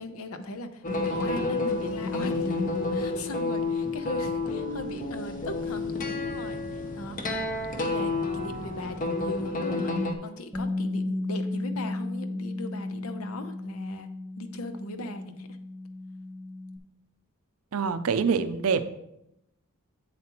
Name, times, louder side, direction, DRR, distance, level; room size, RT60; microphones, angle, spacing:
voice 1, 0.0-2.6 2.9-7.4 7.8-9.9 10.2-14.1 14.4-15.5, left 2 dB, 70° left, 8 dB, 0.7 m, -38 dB
sound 1, 0.8-10.1, left 3 dB, 35° left, 0.7 m, -30 dB
Bass guitar, 10.5-16.8, left 2 dB, 5° right, 0.6 m, -34 dB
voice 2, 17.7-18.8, right 5 dB, 70° right, 11 dB, 0.5 m, -25 dB
8.3 x 7.3 x 3.0 m, 0.83 s
head